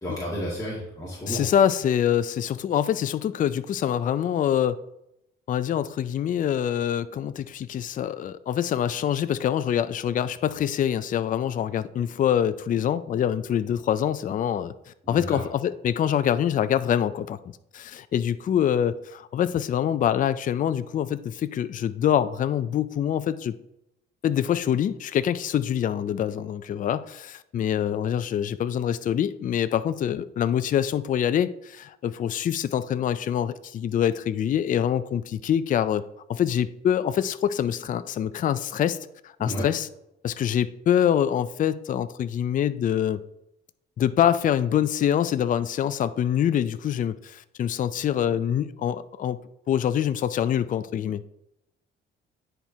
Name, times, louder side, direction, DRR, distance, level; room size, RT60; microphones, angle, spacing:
voice 1, 0.0-1.4 15.0-15.4 39.4-39.7, equal, 15° left, -7 dB, 2.0 m, -32 dB
voice 2, 1.3-4.8 5.5-17.4 17.7-23.5 24.2-39.0 39.2-39.9 40.2-43.2 44.0-49.4 49.7-51.2, left 9 dB, 45° left, 13 dB, 0.4 m, -25 dB
10.0 x 4.4 x 2.8 m, 0.82 s
cardioid pair, 90°, 20 cm